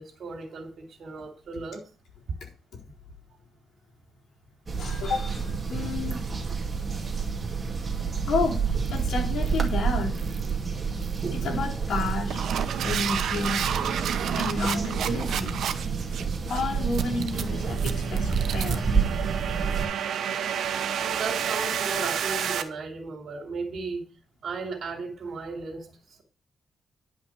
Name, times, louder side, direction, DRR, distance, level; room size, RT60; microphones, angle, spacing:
voice 1, 0.0-1.8 21.0-24.0 24.4-26.2, right 4 dB, 65° right, 4 dB, 3.0 m, -35 dB
sound 1, 4.7-19.9, right 5 dB, 30° right, 2.2 m, -29 dB
voice 2, 4.8-6.2 8.3-8.6 8.9-10.2 11.3-12.5 12.8-13.7 14.4-15.6 16.5-18.9, left 4 dB, 75° left, -1 dB, 4.1 m, -31 dB
sound 2, 8.9-9.1 9.4-9.7 10.1-10.5 11.0-11.3 11.9-22.6, right 8 dB, 80° right, 1.1 m, -30 dB
10.5 x 5.7 x 6.4 m, 0.35 s
cardioid pair, 115°, 0 cm